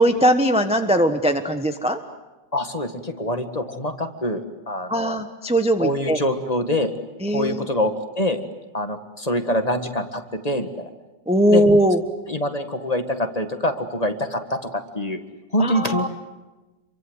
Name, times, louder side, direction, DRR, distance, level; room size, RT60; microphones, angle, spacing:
voice 1, 0.0-2.0 4.9-6.2 7.2-7.6 11.3-12.0 15.6-16.1, equal, 5° right, 6 dB, 0.9 m, -19 dB
voice 2, 2.5-5.2 5.8-6.9 7.3-8.4 8.7-10.9 11.5-11.6 12.3-15.2 15.5-16.1, left 1 dB, 20° left, 6 dB, 1.6 m, -25 dB
27.5 x 23.5 x 8.1 m, 1.1 s
omnidirectional pair, 2.0 m